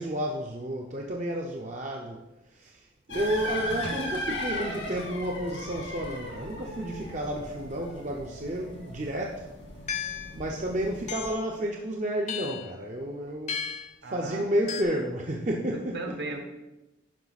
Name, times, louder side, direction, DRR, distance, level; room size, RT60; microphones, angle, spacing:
voice 1, 0.0-2.2 2.5-2.8 3.1-9.5 10.3-13.6 14.0-15.9, right 1 dB, 40° right, 0 dB, 0.7 m, -31 dB
sound 1, 3.1-11.3, left 1 dB, 85° left, 2.6 m, -37 dB
sound 2, 9.9-10.4 11.1-11.5 12.3-12.7 13.5-13.9 14.7-14.8, left 7 dB, 40° left, 0.7 m, -34 dB
voice 2, 14.0-14.4 15.7-16.4, right 2 dB, 65° right, 4 dB, 1.4 m, -36 dB
10.5 x 5.1 x 4.1 m, 1.0 s
head